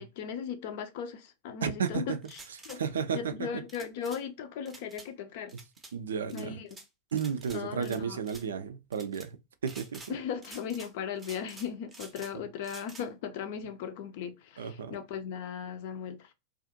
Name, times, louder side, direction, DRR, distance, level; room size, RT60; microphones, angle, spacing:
voice 1, 0.0-2.4 2.6-2.8 3.1-5.6 6.3-6.8 7.5-8.2 10.1-16.3, left 7 dB, 50° left, 0.5 m, -37 dB
voice 2, 1.6-2.0 2.8-3.3 5.9-6.6 7.1-9.4 9.6-10.0 14.6-15.0, right 7 dB, 65° right, 0.3 m, -32 dB
sound 1, 2.2-2.8 3.7-4.2 4.6-5.1 5.5-5.9 6.3-6.9 7.2-8.5 8.9-9.3 9.6-10.1 10.4-10.9 11.2-12.3 12.6-13.1, right 3 dB, 15° right, 0.6 m, -49 dB
2.5 x 2.4 x 2.5 m
figure-of-eight pair, 90°, 0 cm